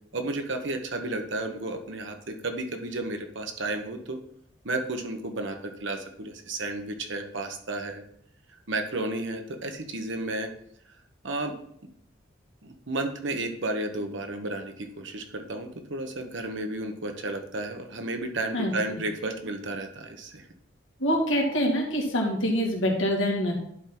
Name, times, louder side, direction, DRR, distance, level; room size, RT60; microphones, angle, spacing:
voice 1, 0.1-4.2 4.6-8.0 8.7-10.5 11.2-11.5 12.6-20.5, right 2 dB, 70° right, 5 dB, 1.1 m, -32 dB
voice 2, 21.0-23.5, equal, 80° left, 0 dB, 2.1 m, -25 dB
11.0 x 3.9 x 4.4 m, 0.68 s
head